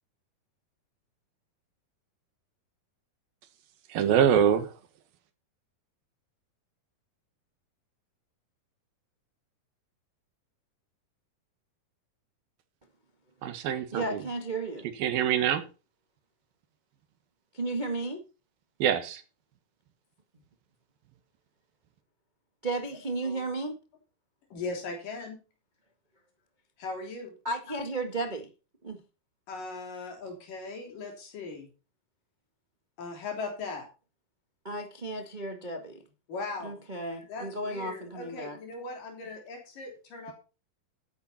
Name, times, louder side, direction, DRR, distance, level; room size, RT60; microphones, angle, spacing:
voice 1, 3.9-4.7 13.4-14.0 15.0-15.6 18.8-19.2, right 9 dB, 80° right, 3.3 m, -24 dB
voice 2, 13.9-14.9 17.5-18.2 22.6-23.8 27.4-28.5 28.8-29.0 34.6-36.0 36.6-38.6, right 2 dB, 25° right, 0.9 m, -34 dB
voice 3, 24.5-25.4 26.8-27.3 29.5-31.7 33.0-33.9 36.3-36.7 37.2-40.3, left 3 dB, 65° left, 5.1 m, -39 dB
12.0 x 10.0 x 4.3 m
omnidirectional pair, 4.1 m